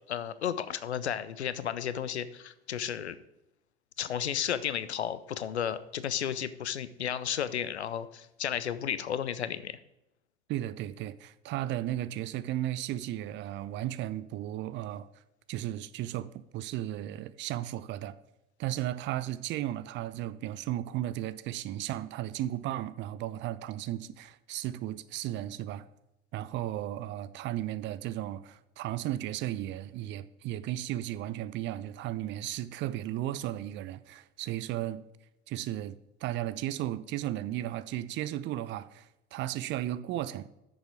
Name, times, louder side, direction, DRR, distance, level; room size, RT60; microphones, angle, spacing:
voice 1, 0.1-3.2 4.0-9.8, left 9 dB, 75° left, 0.6 m, -33 dB
voice 2, 10.5-15.1 15.5-18.2 18.6-25.9 26.3-35.0 35.5-36.0 36.2-40.5, right 13 dB, 35° right, 0.5 m, -35 dB
9.7 x 6.7 x 4.7 m
figure-of-eight pair, 70°, 33 cm